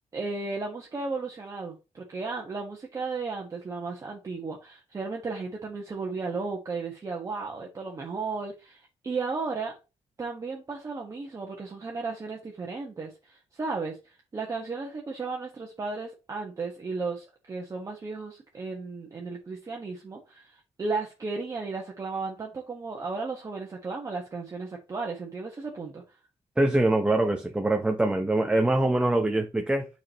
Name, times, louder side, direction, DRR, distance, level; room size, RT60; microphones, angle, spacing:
voice 1, 0.1-9.7 10.2-26.0, right 4 dB, 30° right, 1.4 m, -34 dB
voice 2, 26.6-29.9, right 2 dB, 10° right, 0.7 m, -24 dB
9.6 x 6.0 x 3.0 m
wide cardioid pair, 175°, 11 cm